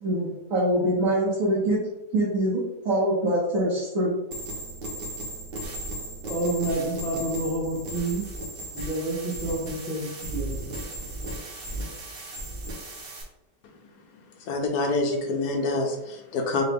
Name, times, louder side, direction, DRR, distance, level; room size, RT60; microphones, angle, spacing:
voice 1, 0.0-1.8 2.1-4.1, right 1 dB, 60° right, -4 dB, 1.1 m, -24 dB
sound 1, 4.3-13.2, right 1 dB, 45° right, 0.8 m, -36 dB
voice 2, 6.2-8.2 8.7-10.7, right 2 dB, 5° left, -4 dB, 0.5 m, -29 dB
voice 3, 14.4-16.6, left 3 dB, 70° left, 3 dB, 1.2 m, -26 dB
4.7 x 2.4 x 3.4 m, 0.95 s
omnidirectional pair, 1.8 m